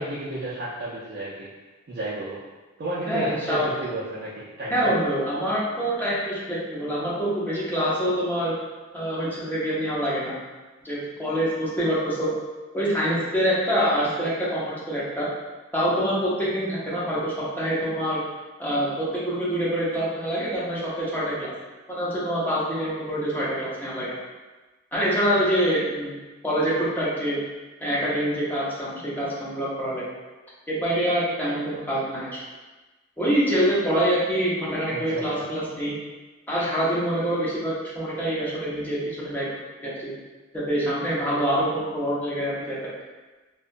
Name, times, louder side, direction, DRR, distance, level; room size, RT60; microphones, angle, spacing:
voice 1, 0.0-1.5 1.9-2.4 2.8-4.9 34.9-35.5, right 1 dB, 45° right, -9 dB, 0.4 m, -32 dB
voice 2, 3.1-3.7 4.7-8.5 8.9-10.4 10.8-12.3 12.7-15.3 15.7-18.2 18.6-21.5 21.9-24.2 24.9-26.2 26.4-27.4 27.8-30.0 30.7-32.4 33.2-35.9 36.5-39.5 39.8-40.1 40.5-42.8, equal, 10° left, -8 dB, 0.6 m, -25 dB
2.7 x 2.1 x 2.5 m, 1.2 s
head